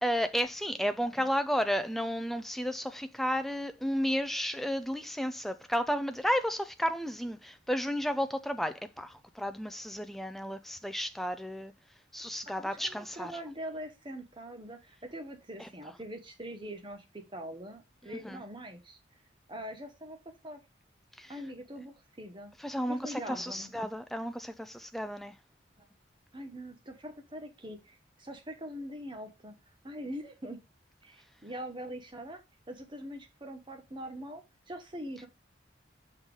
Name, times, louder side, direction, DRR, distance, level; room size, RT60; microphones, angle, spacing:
voice 1, 0.0-11.7 12.1-13.4 15.6-15.7 18.2-18.4 21.2-21.3 22.6-25.3, equal, ahead, 0.4 m, -32 dB
voice 2, 12.6-19.0 19.5-20.6 21.3-22.5 22.9-23.7 25.8-25.9 26.3-29.6 29.8-30.6 31.0-32.4 32.7-35.3, equal, 25° right, 1.1 m, -43 dB
5.7 x 3.9 x 4.7 m
head